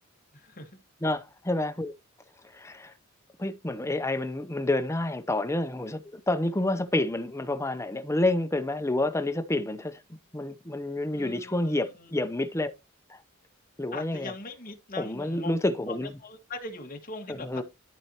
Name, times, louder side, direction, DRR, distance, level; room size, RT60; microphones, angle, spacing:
voice 1, 0.3-0.7 11.2-12.1 13.9-15.5 15.9-17.6, left 3 dB, 40° left, 1.6 m, -41 dB
voice 2, 1.0-1.9 2.5-2.9 3.4-10.0 10.3-12.7 13.1-13.2 13.8-14.3 15.0-16.1 17.3-17.6, left 2 dB, 15° left, 0.7 m, -29 dB
12.5 x 4.3 x 2.9 m
head